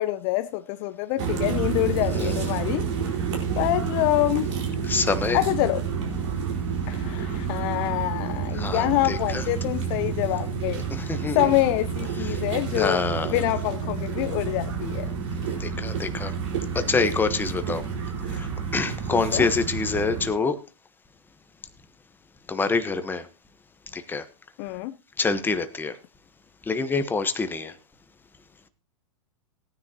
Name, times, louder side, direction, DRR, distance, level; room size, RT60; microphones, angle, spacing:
voice 1, 0.0-2.8 3.6-4.5 5.3-5.8 6.9-10.8 11.3-13.0 13.3-15.1 19.1-19.5 24.6-25.0, left 16 dB, 45° left, 0.6 m, -26 dB
sound 1, 1.2-20.3, right 6 dB, 60° right, 4.6 m, -29 dB
voice 2, 2.1-2.5 4.8-5.4 8.5-9.7 10.9-11.4 12.2-12.4 12.7-13.4 15.5-16.3 16.7-17.8 18.3-20.6 22.5-23.3 23.9-24.2 25.2-26.0 26.7-27.7, left 4 dB, 10° left, 1.2 m, -26 dB
17.5 x 9.7 x 2.9 m
hypercardioid pair, 115°, 17 cm